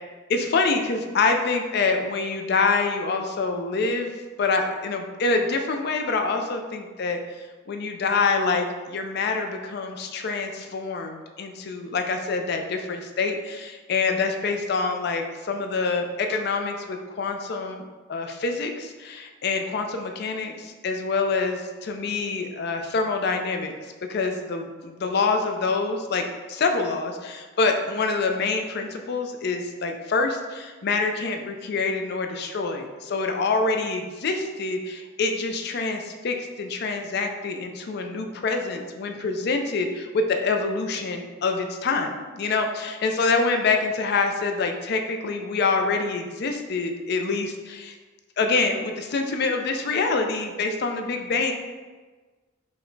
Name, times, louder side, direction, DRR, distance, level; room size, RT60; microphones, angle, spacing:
voice 1, 0.3-7.2 7.7-48.0 48.4-51.5, left 4 dB, 50° left, 4 dB, 0.4 m, -26 dB
4.7 x 2.1 x 3.9 m, 1.3 s
head